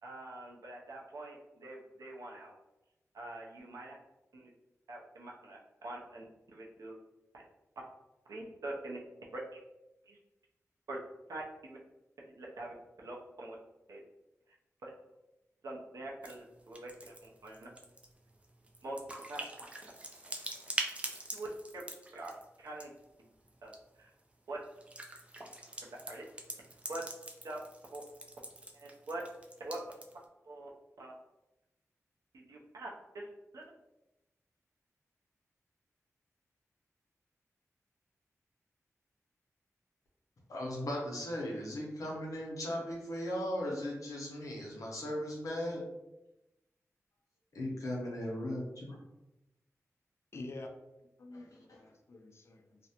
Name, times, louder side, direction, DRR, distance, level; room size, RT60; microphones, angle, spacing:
voice 1, 0.0-2.5 3.1-3.9 4.3-4.5 4.9-7.0 7.8-7.9 8.3-9.0 9.5-9.6 10.1-10.2 10.9-11.0 11.3-11.8 12.3-13.6 13.9-14.0 14.5-14.6 14.8-14.9 15.6-17.7 18.8-18.9 19.3-19.4 20.3-20.4 21.3-21.5 21.7-21.9 22.1-22.3 22.6-22.9 23.2-23.3 23.6-24.1 24.5-24.6 25.8-26.2 26.9-27.0 27.4-27.6 27.9-28.0 28.7-29.2 29.6-29.8 30.4-30.7 31.0-31.1 32.3-32.9 33.1-33.3 33.5-33.7, right 2 dB, 80° right, -2 dB, 0.6 m, -44 dB
sound 1, 16.2-16.4 16.6-23.0 23.5-23.8 24.6-30.2, right 1 dB, 20° right, 0.4 m, -44 dB
voice 2, 40.5-45.8 47.5-48.6 51.3-51.4, left 1 dB, 80° left, -2 dB, 0.7 m, -37 dB
voice 3, 50.3-50.7 51.2-52.9, left 2 dB, 50° left, 4 dB, 0.4 m, -47 dB
2.5 x 2.1 x 2.8 m, 0.95 s
wide cardioid pair, 80°, 6 cm